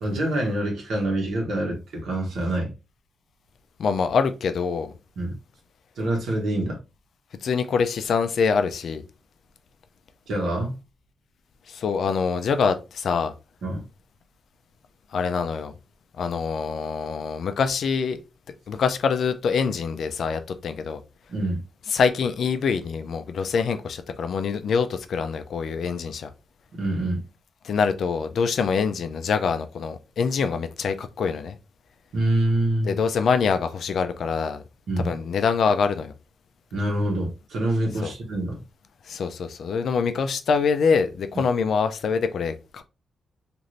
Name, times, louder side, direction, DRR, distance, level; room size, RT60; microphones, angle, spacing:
voice 1, 0.0-2.7 5.2-5.3 6.0-6.8 10.3-10.8 13.6-13.8 21.3-21.6 26.8-27.2 32.1-33.0 34.9-35.2 36.7-38.6, right 1 dB, 80° right, 1.0 m, -26 dB
voice 2, 3.8-4.9 7.4-9.1 11.7-13.3 15.1-15.7 16.2-18.2 18.7-21.0 21.9-26.3 27.6-31.6 32.8-34.6 35.0-36.1 38.0-38.1 39.0-42.8, left 5 dB, 60° left, 0.4 m, -25 dB
3.1 x 2.5 x 2.5 m
wide cardioid pair, 160°, 0 cm